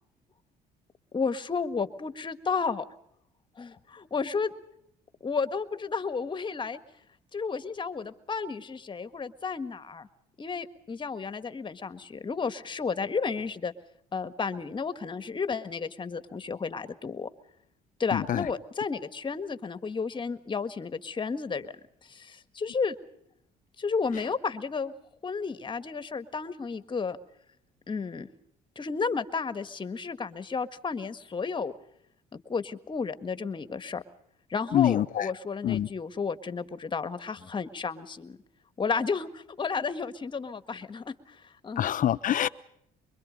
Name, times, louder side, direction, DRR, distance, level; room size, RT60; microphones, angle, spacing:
voice 1, 1.1-2.8 3.6-4.5 5.2-6.8 7.3-10.1 10.4-13.7 14.1-17.3 18.0-21.7 22.0-23.0 23.8-24.9 25.2-27.2 27.9-28.3 28.7-31.7 32.3-34.0 34.5-38.4 38.8-41.9, left 5 dB, 30° left, 11 dB, 1.6 m, -32 dB
voice 2, 18.1-18.4 34.7-35.2 35.6-35.9 41.8-42.5, left 11 dB, 50° left, 13 dB, 0.9 m, -25 dB
24.5 x 23.5 x 5.3 m, 0.74 s
cardioid pair, 110°, 17 cm